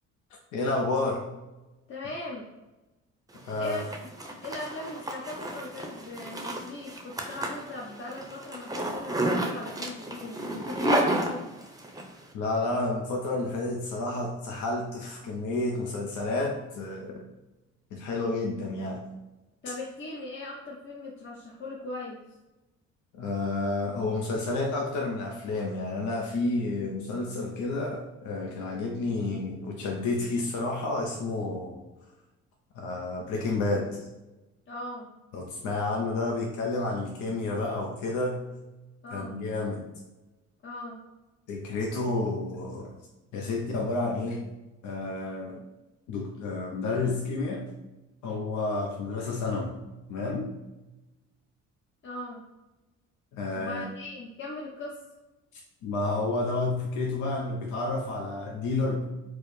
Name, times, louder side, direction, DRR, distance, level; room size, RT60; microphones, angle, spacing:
voice 1, 0.5-1.2 3.5-3.8 12.3-17.2 17.9-19.1 23.1-31.8 32.7-34.1 35.3-38.5 39.1-39.9 41.5-42.9 43.3-44.4 44.8-45.6 46.1-47.7 48.2-49.7 50.1-50.5 53.3-53.8 55.8-59.2, left 2 dB, 80° left, 0 dB, 0.6 m, -30 dB
voice 2, 1.9-2.4 3.6-4.1 4.4-11.4 19.6-22.2 34.7-35.1 39.0-39.3 40.6-41.0 52.0-52.4 53.5-55.0, left 2 dB, 40° left, -3 dB, 0.8 m, -39 dB
Zipper (clothing), 3.4-12.1, right 1 dB, 10° right, 0.6 m, -31 dB
4.6 x 2.0 x 3.1 m, 1.0 s
supercardioid pair, 70°, 30 cm